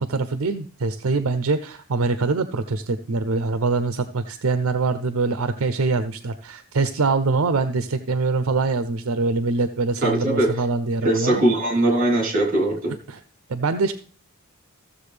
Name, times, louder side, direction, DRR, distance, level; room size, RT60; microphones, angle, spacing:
voice 1, 0.0-11.4 13.1-13.2 13.5-13.9, right 3 dB, 70° right, 10 dB, 0.6 m, -24 dB
voice 2, 10.0-10.5 11.0-12.9, right 1 dB, 40° right, -1 dB, 3.4 m, -20 dB
15.0 x 7.2 x 3.3 m, 0.43 s
head